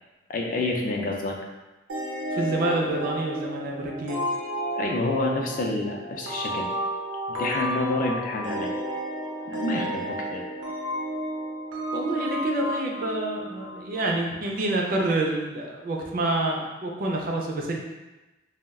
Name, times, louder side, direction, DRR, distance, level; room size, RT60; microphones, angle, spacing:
voice 1, 0.3-1.4 4.8-6.7 7.4-8.7 9.5-10.4, left 2 dB, 45° left, 1 dB, 0.4 m, -28 dB
sound 1, 1.9-14.3, right 1 dB, 85° right, 0.7 m, -32 dB
voice 2, 2.3-4.2 11.9-17.8, right 2 dB, 50° right, 0 dB, 0.4 m, -27 dB
2.3 x 2.1 x 3.4 m, 1.1 s
head